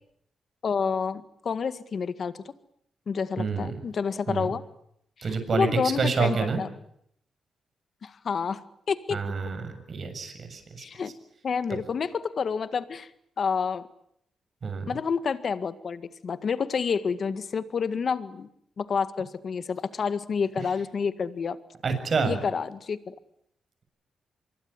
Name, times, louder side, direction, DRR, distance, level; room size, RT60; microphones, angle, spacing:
voice 1, 0.6-2.4 3.1-4.6 5.2-6.7 8.0-9.2 10.8-11.1 11.4-13.1 13.4-13.9 14.9-18.5 18.8-21.6 22.2-23.1, left 6 dB, 55° left, 12 dB, 1.8 m, -29 dB
voice 2, 3.4-3.7 4.3-4.5 5.2-5.7 6.0-6.6 9.1-10.8 14.6-14.8 21.8-22.4, right 5 dB, 50° right, 8 dB, 7.2 m, -28 dB
25.5 x 23.0 x 9.9 m, 0.72 s
cardioid pair, 100°, 0 cm